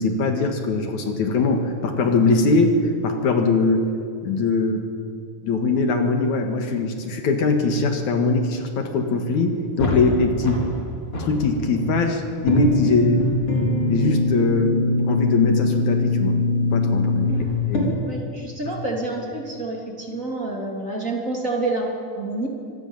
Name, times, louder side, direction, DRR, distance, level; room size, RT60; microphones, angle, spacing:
voice 1, 0.0-2.8 3.0-3.9 4.2-4.9 5.4-10.7 11.2-13.3 13.9-16.3 16.7-17.3 17.6-17.9 18.7-18.8, left 3 dB, 70° left, 5 dB, 3.0 m, -21 dB
sound 1, 9.8-10.8 11.1-12.0 12.4-17.8, left 2 dB, 40° left, 4.9 m, -22 dB
voice 2, 18.0-21.9 22.1-22.5, right 2 dB, 25° right, -1 dB, 3.3 m, -28 dB
25.5 x 20.0 x 7.3 m, 2.5 s
omnidirectional pair, 3.6 m